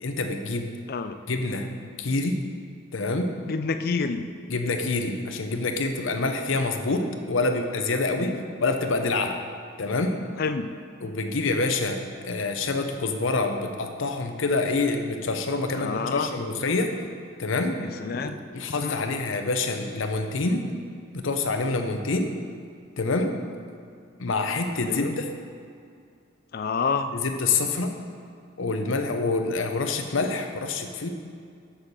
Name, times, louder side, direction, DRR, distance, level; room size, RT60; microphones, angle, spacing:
voice 1, 0.0-0.7 1.3-1.7 2.0-2.4 2.9-3.3 4.5-9.4 9.8-10.2 11.0-16.9 17.4-17.8 18.2-20.6 21.1-22.3 23.0-23.3 24.2-25.3 27.1-28.0 28.6-31.1, left 3 dB, 75° left, 5 dB, 0.7 m, -26 dB
voice 2, 3.5-4.3 8.2-8.5 10.4-10.7 15.7-16.3 17.8-18.4 18.8-19.0 24.8-25.2 26.5-27.1, left 4 dB, 50° left, 9 dB, 0.4 m, -28 dB
6.3 x 5.6 x 6.7 m, 2.3 s
head